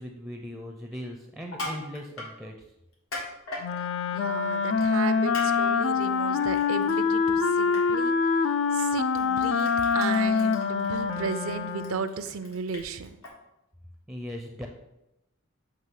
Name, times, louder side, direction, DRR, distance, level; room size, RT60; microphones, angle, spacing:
voice 1, 0.0-2.5 14.1-14.7, equal, ahead, 2 dB, 0.5 m, -38 dB
Crushing, 1.4-2.3 2.9-3.7 4.8-5.0 5.3-5.5 5.8-6.9 7.3-7.4 7.7-7.8 8.8-8.9 9.1-13.3, left 2 dB, 85° left, 2.0 m, -38 dB
Wind instrument woodwind instrument, 3.6-12.2, left 5 dB, 65° left, 0.4 m, -25 dB
voice 2, 4.1-8.2 8.7-13.2, right 5 dB, 75° right, 11 dB, 0.5 m, -34 dB
7.5 x 3.0 x 5.7 m, 0.89 s
head